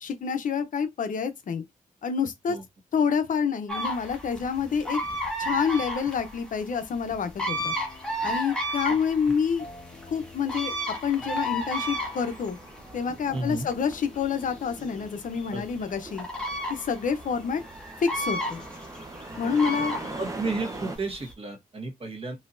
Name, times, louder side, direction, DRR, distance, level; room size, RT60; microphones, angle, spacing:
voice 1, 0.0-1.6 2.0-2.6 2.9-5.0 5.4-7.7 8.2-9.6 10.1-10.7 11.0-12.6 12.9-16.3 16.7-17.6 18.0-18.6 19.4-19.9, left 6 dB, 70° left, 0.8 m, -27 dB
sound 1, 3.7-21.3, equal, 5° left, 1.5 m, -34 dB
sound 2, 6.9-15.1, left 2 dB, 45° left, 2.3 m, -49 dB
sound 3, 11.8-21.0, right 2 dB, 25° right, 1.0 m, -43 dB
voice 2, 13.3-13.7 15.5-15.6 19.4-19.5 20.2-22.4, right 3 dB, 40° right, 1.4 m, -32 dB
4.2 x 2.8 x 2.6 m
cardioid pair, 90°, 14 cm